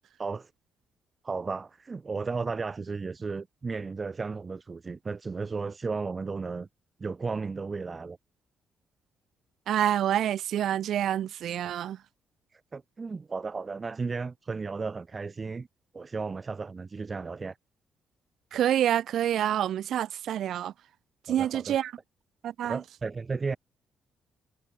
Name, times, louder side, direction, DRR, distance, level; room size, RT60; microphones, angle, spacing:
voice 1, 0.2-0.5 1.2-6.7 7.0-8.2 12.5-15.7 15.9-17.6 21.3-21.8 22.6-23.6, right 4 dB, 30° right, 0.9 m, -34 dB
voice 2, 9.7-12.0 18.5-20.7 21.3-21.9 22.4-22.8, right 11 dB, 70° right, 0.7 m, -27 dB
cardioid pair, 90°, 0 cm